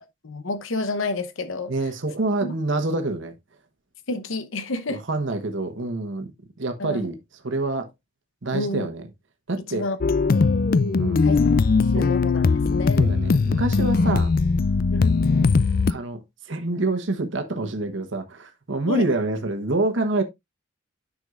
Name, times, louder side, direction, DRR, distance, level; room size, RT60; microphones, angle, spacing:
voice 1, 0.2-1.7 2.4-2.5 4.1-5.0 6.8-7.1 8.5-8.9 9.7-10.0 11.2-11.4 11.9-12.4 12.7-13.1 14.9-15.2 18.9-19.1, left 2 dB, 75° left, 0.9 m, -29 dB
voice 2, 1.7-3.3 4.9-6.3 6.6-7.9 8.4-9.0 9.5-9.9 11.0-11.3 12.0-12.2 13.0-14.3 15.9-20.2, right 2 dB, 65° right, 1.1 m, -27 dB
sound 1, 10.0-15.9, left 4 dB, 45° left, 0.4 m, -20 dB
9.4 x 6.3 x 2.5 m
head